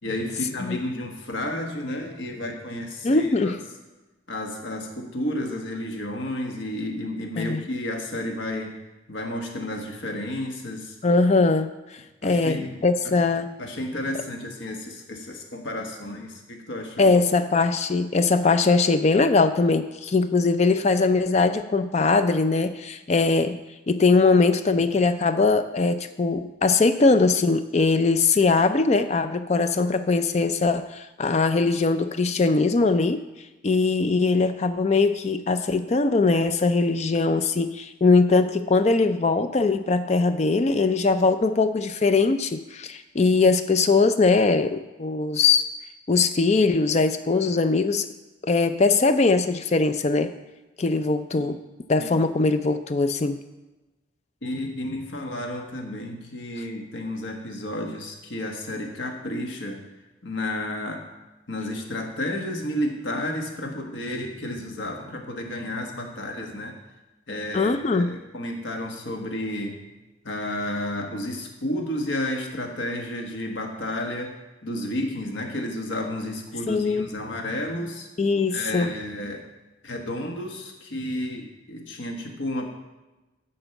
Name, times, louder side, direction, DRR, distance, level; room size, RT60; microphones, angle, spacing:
voice 1, 0.0-3.6 4.3-8.7 9.1-11.0 12.2-12.8 13.0-13.2 13.6-17.1 52.0-52.1 54.4-59.8 60.2-61.0 61.5-66.7 67.3-69.8 70.2-78.1 78.5-79.4 79.8-82.6, left 1 dB, 70° left, 2 dB, 1.4 m, -31 dB
voice 2, 3.0-3.6 7.4-7.6 11.0-11.7 12.2-13.5 17.0-23.6 23.9-33.2 33.6-45.6 46.1-48.1 48.4-50.3 50.8-51.6 51.9-53.4 67.5-68.2 76.7-77.1 78.2-78.9, left 3 dB, 35° left, 10 dB, 0.4 m, -21 dB
10.0 x 4.4 x 7.0 m, 1.1 s
head